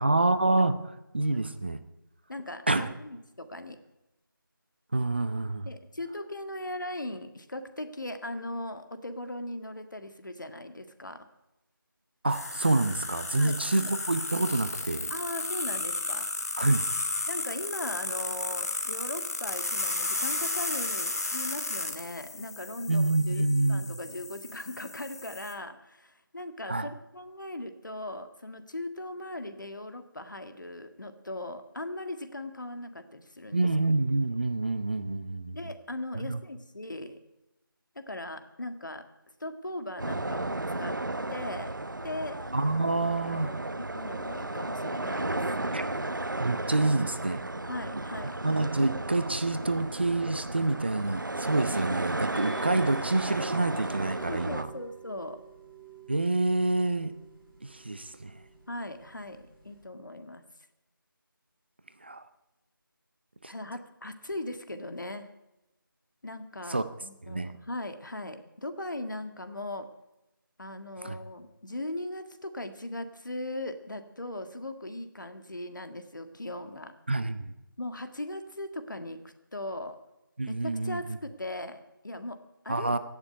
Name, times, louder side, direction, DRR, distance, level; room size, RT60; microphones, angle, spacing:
voice 1, 0.0-1.8 2.7-2.9 4.9-5.7 12.2-15.1 16.6-16.9 22.9-24.0 26.7-26.9 33.5-35.6 36.3-36.4 42.5-43.5 45.5-45.8 46.4-47.4 48.4-54.7 56.1-57.1 57.6-58.4 62.0-62.2 63.4-63.5 66.7-66.8 67.2-67.5 71.0-71.2 77.1-77.5 80.4-81.0 82.7-83.0, right 2 dB, 30° right, 11 dB, 0.6 m, -27 dB
voice 2, 2.3-3.8 5.6-11.2 13.3-13.9 15.1-16.2 17.3-33.7 35.5-37.2 37.9-39.1 39.4-41.0 41.3-41.7 42.0-42.4 43.0-45.4 47.7-48.3 54.2-55.4 58.7-60.4 63.4-65.3 66.2-69.9 70.6-76.9 77.8-80.0 80.5-83.0, left 1 dB, 60° left, 9 dB, 1.8 m, -39 dB
sound 1, 12.3-25.5, left 2 dB, 45° left, 1.7 m, -34 dB
sound 2, 40.0-54.6, right 2 dB, 60° right, 1.0 m, -34 dB
sound 3, 52.3-59.8, right 4 dB, 5° left, 3.6 m, -50 dB
17.0 x 7.0 x 9.7 m, 0.94 s
figure-of-eight pair, 165°, 12 cm